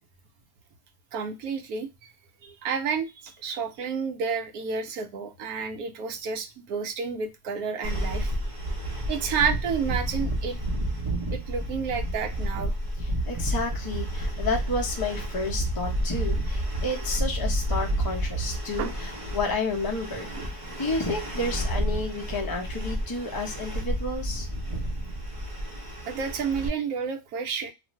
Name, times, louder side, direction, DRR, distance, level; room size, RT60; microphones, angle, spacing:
voice 1, 1.1-2.1 2.4-8.4 9.1-10.6 11.3-12.7 18.8-18.9 20.4-20.5 26.1-27.7, right 6 dB, 80° right, 5 dB, 1.0 m, -30 dB
sound 1, 7.8-26.7, right 1 dB, 40° right, 0.5 m, -30 dB
voice 2, 13.0-20.3 20.8-24.5, left 2 dB, 30° left, 0 dB, 0.4 m, -31 dB
2.5 x 2.5 x 3.0 m, 0.23 s
omnidirectional pair, 1.6 m